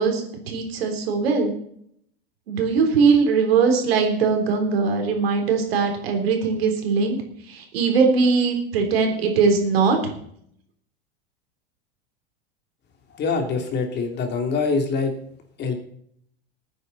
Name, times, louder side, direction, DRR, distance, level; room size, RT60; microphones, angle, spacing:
voice 1, 0.0-1.5 2.5-7.2 7.5-10.1, right 5 dB, 75° right, 3 dB, 3.9 m, -20 dB
voice 2, 13.1-15.1 15.6-15.7, left 4 dB, 35° left, 4 dB, 3.0 m, -24 dB
19.5 x 9.5 x 4.1 m, 0.68 s
hypercardioid pair, 105°, 31 cm